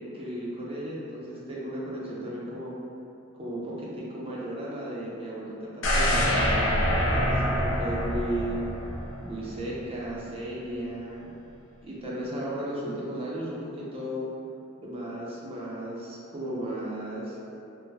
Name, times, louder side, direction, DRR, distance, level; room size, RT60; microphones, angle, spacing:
voice 1, 0.0-2.7 3.4-8.6 9.2-11.3 11.8-14.3 14.8-17.5, right 1 dB, 30° right, -6 dB, 0.5 m, -35 dB
sound 1, 5.8-9.8 10.2-10.3, equal, 65° left, 0.5 m, -26 dB
3.7 x 2.0 x 2.7 m, 2.7 s
head